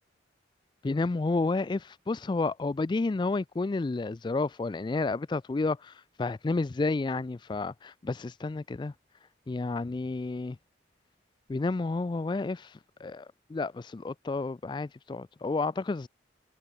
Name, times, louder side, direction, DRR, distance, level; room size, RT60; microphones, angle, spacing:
voice 1, 0.8-5.9 6.2-8.9 9.5-10.6 11.5-16.1, left 3 dB, 25° left, 0.3 m, -31 dB
head